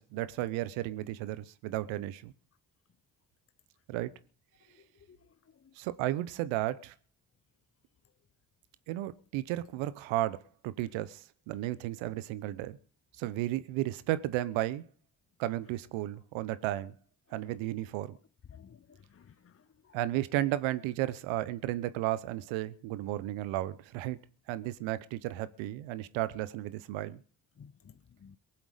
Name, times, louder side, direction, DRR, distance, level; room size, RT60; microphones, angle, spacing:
voice 1, 0.0-2.3 3.9-4.1 5.8-6.9 8.9-10.4 10.6-12.8 13.2-14.8 15.4-16.9 17.3-18.2 19.9-24.2 24.5-27.2, right 15 dB, 85° right, 1.0 m, -33 dB
voice 2, 18.5-19.9 27.6-27.9 28.2-28.4, left 7 dB, 30° left, 0.8 m, -55 dB
23.0 x 7.8 x 5.0 m
hypercardioid pair, 40°, 45 cm